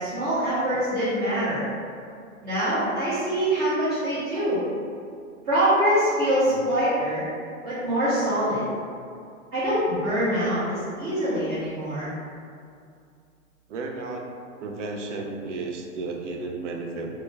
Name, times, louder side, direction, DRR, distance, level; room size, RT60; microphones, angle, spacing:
voice 1, 0.0-1.6 2.4-4.6 5.5-7.2 7.6-8.6 9.5-12.1, right 1 dB, 25° right, -14 dB, 0.6 m, -24 dB
voice 2, 13.7-14.3 14.6-17.1, right 3 dB, 65° right, 2 dB, 0.5 m, -33 dB
2.2 x 2.2 x 3.1 m, 2.3 s
hypercardioid pair, 155°, 40 cm